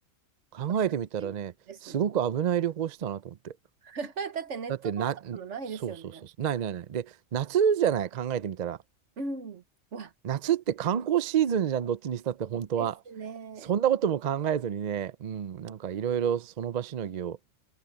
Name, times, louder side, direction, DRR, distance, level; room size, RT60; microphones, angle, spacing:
voice 1, 0.5-1.5 1.8-3.5 4.8-5.4 5.8-5.9 6.4-8.8 10.2-13.0 13.6-17.4, right 9 dB, 55° right, 0.5 m, -28 dB
voice 2, 1.7-2.1 3.8-6.3 9.2-9.6 9.9-10.1 12.8-13.7, right 4 dB, 70° right, 1.6 m, -38 dB
omnidirectional pair, 1.3 m